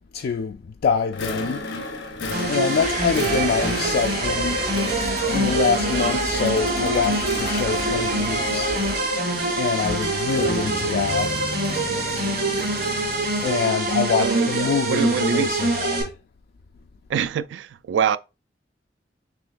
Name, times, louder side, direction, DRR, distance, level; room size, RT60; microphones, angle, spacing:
voice 1, 0.1-1.6 2.5-4.6 5.3-8.7 9.6-11.4 13.4-16.1, left 6 dB, 60° left, 0.3 m, -25 dB
sound 1, 1.1-13.7, left 2 dB, 85° left, 0.8 m, -33 dB
sound 2, 2.3-16.0, right 2 dB, 60° right, 2.6 m, -25 dB
sound 3, 2.8-9.0, right 2 dB, 40° right, 0.6 m, -31 dB
voice 2, 14.2-15.6 17.1-18.2, right 7 dB, 75° right, 0.3 m, -25 dB
6.3 x 3.1 x 2.4 m
head